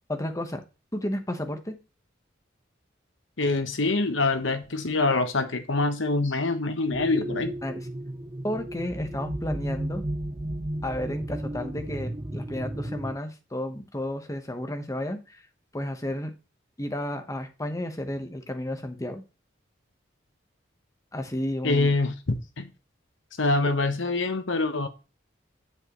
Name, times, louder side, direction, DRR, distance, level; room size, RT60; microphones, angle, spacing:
voice 1, 0.1-0.6 0.9-1.8 7.6-7.8 8.4-10.0 10.8-15.4 15.7-16.3 16.8-19.2 21.1-21.9 23.6-23.7, left 1 dB, 15° left, 1.0 m, -32 dB
voice 2, 3.4-7.5 21.6-22.7 23.4-24.9, left 3 dB, 75° left, 1.2 m, -25 dB
sound 1, 6.9-13.2, right 1 dB, 20° right, 0.6 m, -34 dB
7.8 x 7.6 x 3.0 m
head